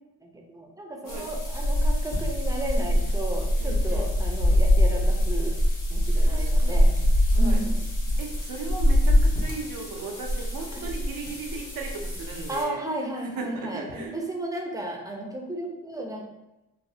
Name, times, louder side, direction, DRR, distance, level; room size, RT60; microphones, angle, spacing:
voice 1, 0.2-5.6 5.9-6.9 7.4-7.9 10.7-10.8 12.5-16.2, right 1 dB, 10° right, 0 dB, 0.6 m, -34 dB
sound 1, 1.1-12.6, equal, 60° left, 1.1 m, -24 dB
voice 2, 3.6-4.1 6.1-7.1 7.3-7.6 8.2-14.2, right 4 dB, 70° right, 2 dB, 0.6 m, -37 dB
3.2 x 2.0 x 2.6 m, 0.95 s
cardioid pair, 60°, 35 cm